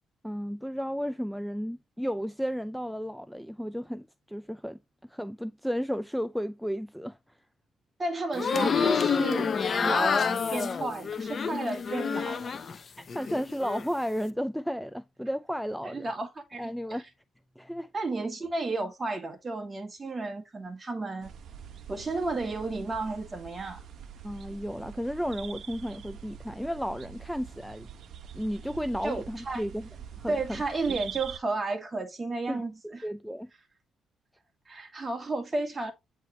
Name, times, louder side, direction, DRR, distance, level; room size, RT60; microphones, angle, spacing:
voice 1, 0.2-7.2 13.0-16.1 16.6-17.0 17.6-17.9 24.2-27.9 28.3-29.9 30.2-30.6 30.9-31.0 32.5-33.5, equal, ahead, 0.4 m, -33 dB
voice 2, 8.0-9.6 9.8-12.6 15.8-16.7 17.9-21.3 21.9-23.8 29.0-29.6 30.3-32.7 34.7-35.9, right 3 dB, 25° right, 2.3 m, -32 dB
sound 1, 8.3-12.8 13.1-13.9, left 6 dB, 45° left, 0.8 m, -28 dB
sound 2, 21.2-31.4, right 8 dB, 65° right, 1.0 m, -44 dB
8.8 x 4.4 x 3.1 m
cardioid pair, 90°, 0 cm